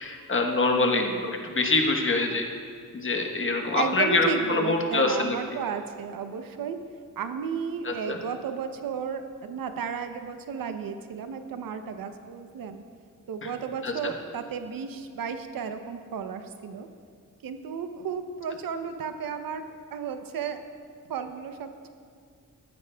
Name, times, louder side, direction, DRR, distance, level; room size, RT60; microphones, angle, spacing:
voice 1, 0.0-1.0 1.5-2.4 2.9-5.4 7.8-8.2 13.8-13.9, left 2 dB, 35° left, 2 dB, 1.1 m, -24 dB
voice 2, 0.7-1.3 3.7-6.8 7.2-12.8 13.3-16.9 17.4-20.7 21.1-21.9, right 6 dB, 75° right, 8 dB, 0.7 m, -33 dB
14.0 x 11.5 x 2.3 m, 2.1 s
wide cardioid pair, 110°, 34 cm